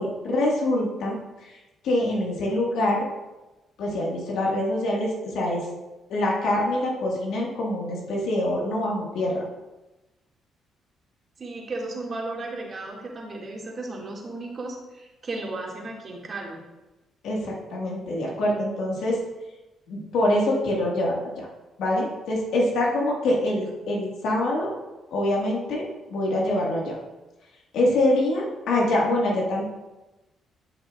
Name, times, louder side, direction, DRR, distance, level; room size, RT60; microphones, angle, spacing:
voice 1, 0.0-1.6 1.8-3.0 3.8-5.7 6.1-9.4 17.2-19.2 19.9-21.5 21.8-24.7 25.1-27.0 27.7-29.6, left 1 dB, 80° left, -3 dB, 1.8 m, -25 dB
voice 2, 11.4-16.6, right 2 dB, 40° right, -2 dB, 2.2 m, -35 dB
11.0 x 6.0 x 2.5 m, 1.1 s
cardioid pair, 90°, 0 cm